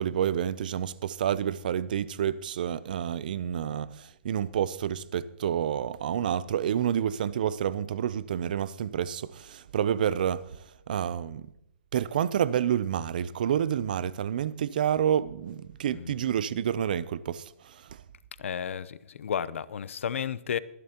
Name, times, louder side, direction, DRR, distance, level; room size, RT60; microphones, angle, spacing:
voice 1, 0.0-10.5 10.9-11.5 11.9-18.0, right 9 dB, 35° right, 0.4 m, -29 dB
voice 2, 18.4-20.6, left 8 dB, 60° left, 0.6 m, -32 dB
23.5 x 11.0 x 2.8 m
hypercardioid pair, 175°, 8 cm